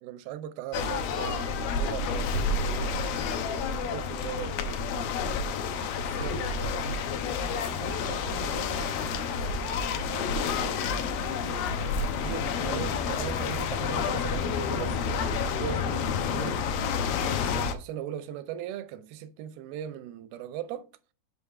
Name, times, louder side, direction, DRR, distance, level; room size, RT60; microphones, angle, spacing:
voice 1, 0.0-2.7 3.8-4.9 6.0-6.9 12.2-16.8 17.2-20.9, right 10 dB, 80° right, 2.2 m, -39 dB
sound 1, 0.7-17.7, left 5 dB, 75° left, 2.2 m, -29 dB
voice 2, 3.6-3.9 5.6-6.8 7.3-12.7, right 1 dB, 50° left, 1.2 m, -47 dB
6.7 x 5.5 x 3.6 m
omnidirectional pair, 4.7 m